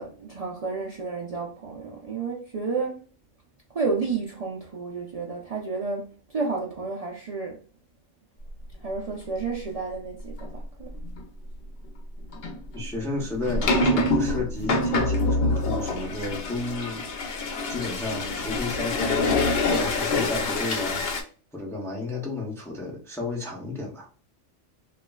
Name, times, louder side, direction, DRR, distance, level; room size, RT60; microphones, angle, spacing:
voice 1, 0.0-3.0 3.7-7.6 8.8-10.9, right 4 dB, 75° right, 0.3 m, -31 dB
sound 1, 10.4-10.5 11.0-11.2 12.3-21.2, left 2 dB, 60° left, 0.7 m, -26 dB
voice 2, 12.7-21.1 21.5-24.1, left 2 dB, 5° left, 0.4 m, -33 dB
3.1 x 2.4 x 2.2 m
omnidirectional pair, 1.3 m